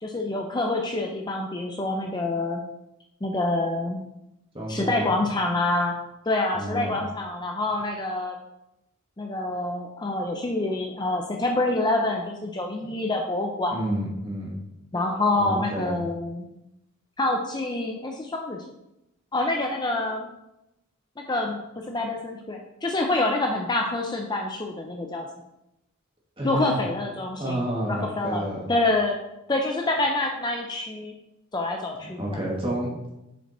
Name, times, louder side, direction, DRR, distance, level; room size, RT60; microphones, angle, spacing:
voice 1, 0.0-2.6 3.2-4.1 4.7-6.0 6.3-8.4 9.2-13.8 14.9-16.5 17.2-18.6 19.3-20.3 21.3-25.3 26.4-27.6 27.9-29.2 29.5-31.1 31.5-32.4, left 2 dB, 20° left, 2 dB, 0.5 m, -27 dB
voice 2, 4.5-5.1 6.5-7.0 13.7-14.6 15.3-16.0 26.4-26.8 27.4-28.7 32.0-33.1, right 1 dB, 25° right, -3 dB, 1.8 m, -30 dB
6.8 x 5.1 x 4.2 m, 0.90 s
head